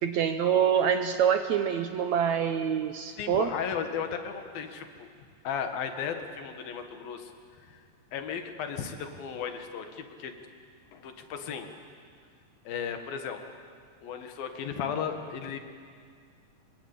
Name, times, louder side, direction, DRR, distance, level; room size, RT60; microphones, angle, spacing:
voice 1, 0.0-3.5, right 8 dB, 70° right, 8 dB, 1.8 m, -26 dB
voice 2, 3.2-5.1 5.5-7.3 7.6-7.8 8.1-10.4 10.9-11.7 12.7-13.4 14.0-15.6, left 7 dB, 85° left, 6 dB, 3.5 m, -35 dB
26.0 x 23.0 x 8.6 m, 2.1 s
omnidirectional pair, 4.1 m